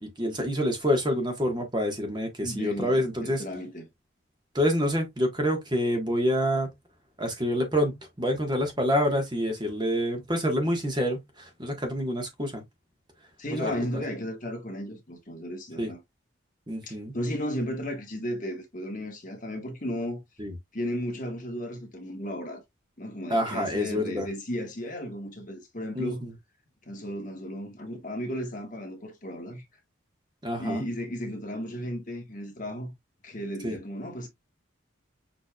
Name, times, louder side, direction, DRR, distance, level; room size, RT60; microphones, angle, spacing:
voice 1, 0.0-3.4 4.5-6.7 7.2-12.6 13.5-14.0 15.8-15.9 16.7-17.2 20.4-20.5 23.3-24.3 25.9-26.1 30.4-30.8 33.6-33.8, equal, 20° right, 1.4 m, -27 dB
voice 2, 2.4-3.9 13.4-16.0 16.8-20.2 20.7-22.6 23.0-26.3 26.8-29.6 30.6-32.9 33.2-34.3, equal, 40° left, 1.5 m, -34 dB
6.7 x 3.4 x 2.3 m
head